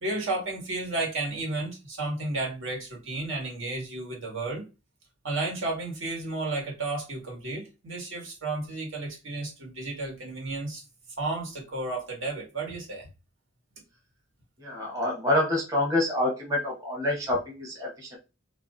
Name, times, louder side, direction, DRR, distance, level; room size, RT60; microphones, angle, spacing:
voice 1, 0.0-4.6 5.2-10.8 11.2-13.1, right 2 dB, 70° right, -1 dB, 1.7 m, -32 dB
voice 2, 14.6-18.2, left 1 dB, 15° right, -3 dB, 1.0 m, -27 dB
3.0 x 2.6 x 3.7 m, 0.29 s
head